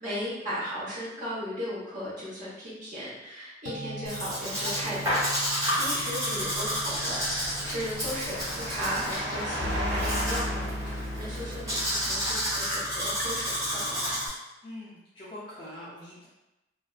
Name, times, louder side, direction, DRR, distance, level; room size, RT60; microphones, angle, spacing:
voice 1, 0.0-5.2 5.7-14.1, equal, 45° right, -10 dB, 1.1 m, -36 dB
sound 1, 3.7-14.2, equal, 80° left, 0.4 m, -39 dB
Domestic sounds home sounds, 4.1-14.3, equal, 20° right, 0.9 m, -31 dB
sound 2, 5.5-11.8, equal, 75° right, 0.7 m, -37 dB
voice 2, 5.6-6.1 14.6-16.3, left 1 dB, 25° left, -9 dB, 0.4 m, -44 dB
2.5 x 2.1 x 2.4 m, 0.99 s
head